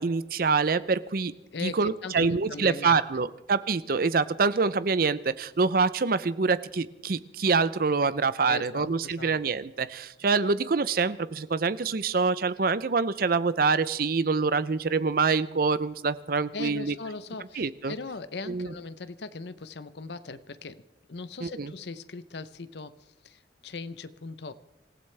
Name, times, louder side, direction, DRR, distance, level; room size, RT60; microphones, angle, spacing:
voice 1, 0.0-1.3 1.6-16.9 17.6-17.9 18.5-18.7 21.4-21.7, right 4 dB, 55° right, 15 dB, 0.6 m, -26 dB
voice 2, 1.5-3.0 8.5-9.3 16.5-20.8 21.1-24.5, left 4 dB, 70° left, 14 dB, 0.7 m, -39 dB
26.0 x 15.5 x 3.3 m, 0.96 s
head